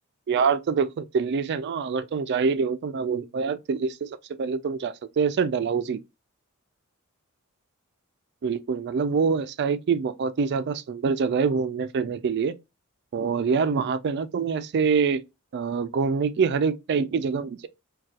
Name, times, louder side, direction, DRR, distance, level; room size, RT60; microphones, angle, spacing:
voice 1, 0.3-4.0 4.4-6.0 8.4-12.5 13.1-15.2 15.5-17.7, right 5 dB, 50° right, 0.3 m, -25 dB
4.0 x 2.3 x 2.3 m
head